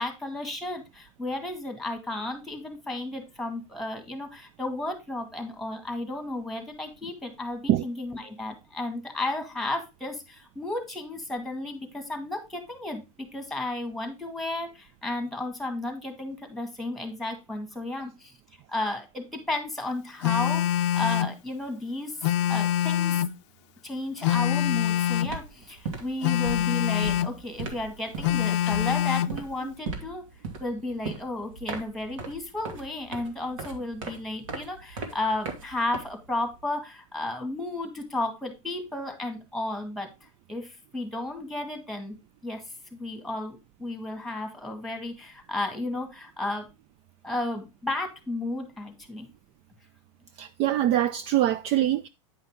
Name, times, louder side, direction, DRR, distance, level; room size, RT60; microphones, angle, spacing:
voice 1, 0.0-18.3 18.7-22.2 22.5-23.2 23.8-30.2 30.6-42.2 42.4-42.6 42.9-46.7 47.2-49.3, left 2 dB, ahead, 2.0 m, -33 dB
Telephone, 20.2-21.4 22.2-23.4 24.2-25.4 26.2-27.4 28.2-29.4, left 11 dB, 60° left, 0.5 m, -25 dB
sound 1, 24.7-24.9 25.1-36.5, right 4 dB, 75° right, 2.4 m, -38 dB
voice 2, 50.4-52.1, right 12 dB, 35° right, 0.4 m, -23 dB
9.6 x 5.6 x 3.6 m
supercardioid pair, 135°, 17 cm